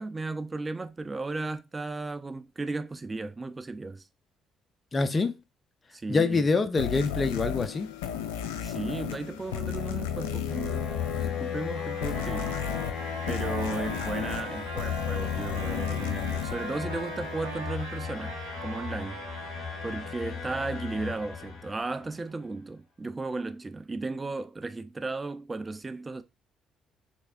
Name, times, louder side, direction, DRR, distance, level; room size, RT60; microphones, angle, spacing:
voice 1, 0.0-4.0 5.9-6.4 8.6-12.5 13.3-18.3 18.6-19.3 19.8-26.2, right 3 dB, 30° right, 0.3 m, -35 dB
voice 2, 4.9-5.4 6.1-7.9, left 3 dB, 35° left, 0.6 m, -25 dB
sound 1, 6.8-17.6, left 9 dB, 85° left, 0.4 m, -34 dB
sound 2, 9.2-22.1, left 7 dB, 65° left, 2.1 m, -36 dB
Trumpet, 11.7-20.2, right 5 dB, 90° right, 0.5 m, -42 dB
3.3 x 3.3 x 2.5 m
hypercardioid pair, 55°, 0 cm